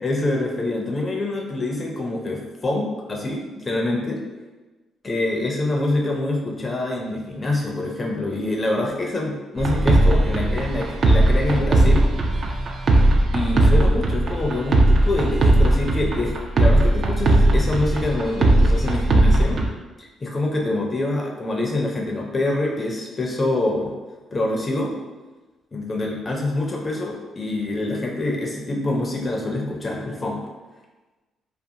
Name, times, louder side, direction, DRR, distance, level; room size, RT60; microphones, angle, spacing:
voice 1, 0.0-4.2 5.0-12.0 13.3-19.6 20.0-23.9 24.3-24.9 25.7-30.4, left 2 dB, 30° left, 0 dB, 0.4 m, -25 dB
sound 1, 9.6-19.7, right 2 dB, 50° right, 0.3 m, -18 dB
2.4 x 2.2 x 2.7 m, 1.2 s
cardioid pair, 90°, 0 cm